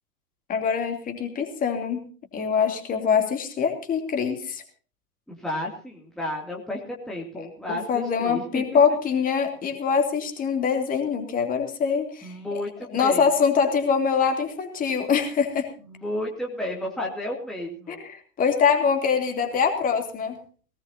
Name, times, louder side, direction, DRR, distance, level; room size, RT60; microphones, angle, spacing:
voice 1, 0.5-2.0 2.3-4.6 7.4-12.3 12.9-15.7 17.9-20.4, left 6 dB, 20° left, 4 dB, 3.0 m, -24 dB
voice 2, 5.3-8.6 12.2-13.3 15.9-18.0, left 1 dB, ahead, -2 dB, 2.6 m, -32 dB
19.5 x 19.0 x 2.8 m, 0.41 s
figure-of-eight pair, 105°, 44 cm